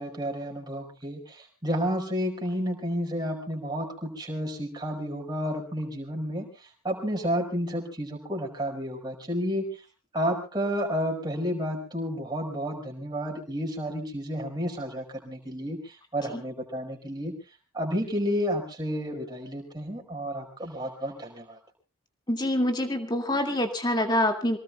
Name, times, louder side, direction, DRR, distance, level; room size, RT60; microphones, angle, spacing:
voice 1, 0.0-6.5 6.8-9.8 10.1-17.3 17.7-21.6, equal, 20° right, 1 dB, 5.2 m, -31 dB
voice 2, 22.3-24.6, left 1 dB, 20° left, 5 dB, 2.2 m, -26 dB
27.5 x 19.0 x 2.3 m, 0.32 s
head